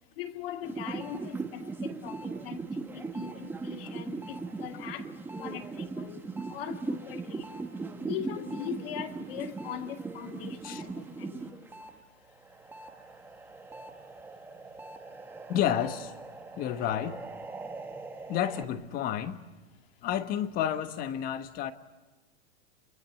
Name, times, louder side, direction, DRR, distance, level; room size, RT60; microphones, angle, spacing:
voice 1, 0.2-5.1 5.4-6.2 6.5-7.5 8.1-11.4, left 10 dB, 55° left, 2.4 m, -40 dB
sound 1, 0.6-11.9 12.3-18.6, right 3 dB, 5° right, 1.0 m, -39 dB
voice 2, 15.5-16.1 16.6-17.2 18.3-19.4 20.0-21.7, left 10 dB, 25° left, 1.3 m, -30 dB
29.5 x 23.5 x 8.2 m
supercardioid pair, 165°, 35 cm